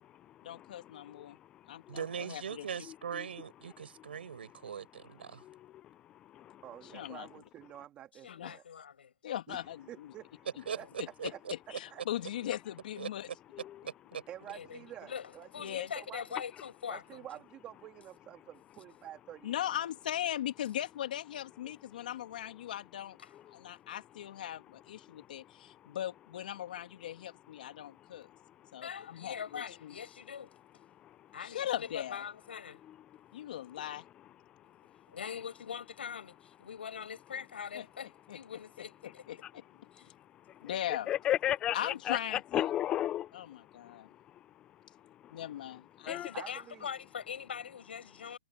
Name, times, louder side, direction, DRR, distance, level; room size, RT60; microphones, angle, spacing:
voice 1, 0.4-1.4 1.7-2.7 6.9-7.3 8.3-8.6 9.2-10.1 11.0-11.3 11.7-13.3 15.6-15.9 19.4-23.2 23.5-28.3 28.7-29.9 31.4-32.2 33.3-34.0 37.7-37.8 38.3-38.4 39.0-39.6 40.6-41.1 41.7-42.7 43.3-44.1 45.3-46.2, left 11 dB, 55° left, 2.8 m, -39 dB
voice 2, 1.9-5.4 10.6-11.5 13.0-13.1 13.8-14.2, right 7 dB, 80° right, 5.1 m, -40 dB
voice 3, 6.6-8.6 9.5-9.6 9.9-10.4 10.8-10.9 11.3-11.4 11.7-12.0 14.3-16.2 16.9-19.5 46.3-46.9, right 12 dB, 20° right, 1.8 m, -49 dB
voice 4, 8.2-9.1 10.8-11.0 14.5-17.3 23.2-23.3 28.8-30.5 31.3-32.8 35.1-39.2 39.9-40.1 40.5-40.8 41.8-41.9 46.1-48.4, left 7 dB, 80° left, 7.2 m, -43 dB
voice 5, 41.1-43.3 46.1-46.3, left 12 dB, 15° left, 0.5 m, -31 dB
hypercardioid pair, 160°, 6 cm